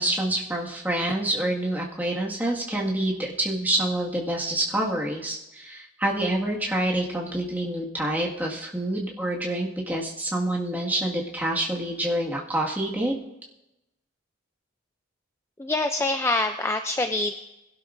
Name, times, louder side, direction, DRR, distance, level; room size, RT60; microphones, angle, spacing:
voice 1, 0.0-13.1, right 1 dB, 10° right, -3 dB, 1.8 m, -27 dB
voice 2, 15.6-17.3, left 2 dB, 15° left, 7 dB, 0.4 m, -25 dB
21.0 x 11.5 x 2.6 m, 0.92 s
head